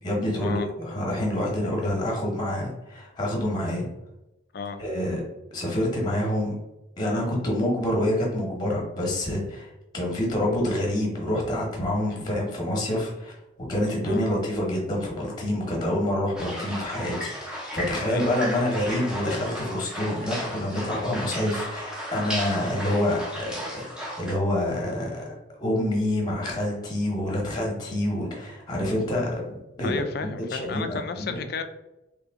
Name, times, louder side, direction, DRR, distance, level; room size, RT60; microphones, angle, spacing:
voice 1, 0.0-3.9 4.8-5.2 5.5-6.6 7.0-13.3 13.7-25.3 25.6-29.9 30.2-31.3, left 1 dB, 20° left, -2 dB, 0.9 m, -27 dB
sound 1, 16.4-24.3, equal, 5° right, 0.6 m, -34 dB
voice 2, 29.8-31.6, left 4 dB, 50° left, 8 dB, 0.4 m, -33 dB
3.2 x 2.9 x 3.5 m, 0.94 s
head